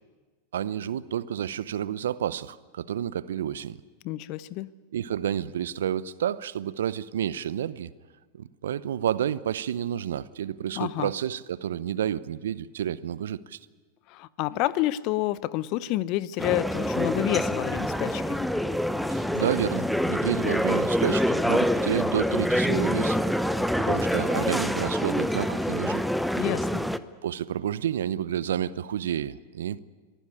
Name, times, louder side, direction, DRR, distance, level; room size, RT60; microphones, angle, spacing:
voice 1, 0.5-3.8 4.9-7.9 8.3-13.6 19.1-23.2 23.9-26.0 27.2-29.8, right 10 dB, 70° right, 18 dB, 0.7 m, -30 dB
voice 2, 4.0-4.7 10.8-11.1 14.1-18.4 26.4-26.8, left 16 dB, 50° left, 18 dB, 0.8 m, -29 dB
sound 1, 16.4-27.0, equal, ahead, 0.9 m, -26 dB
23.5 x 15.0 x 9.8 m, 1.3 s
hypercardioid pair, 95°, 0 cm